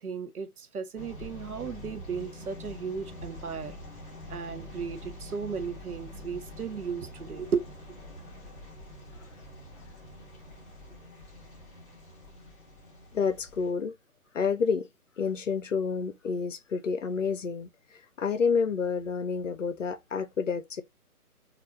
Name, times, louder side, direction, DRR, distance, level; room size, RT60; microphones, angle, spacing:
voice 1, 0.0-3.8 4.3-7.7, right 6 dB, 75° right, 0.7 m, -35 dB
sound 1, 1.0-13.7, left 1 dB, 10° left, 1.0 m, -45 dB
voice 2, 13.1-13.9 14.3-14.9 15.2-17.7 18.2-20.8, left 5 dB, 55° left, 0.6 m, -29 dB
3.3 x 2.4 x 2.8 m
figure-of-eight pair, 145°, 45 cm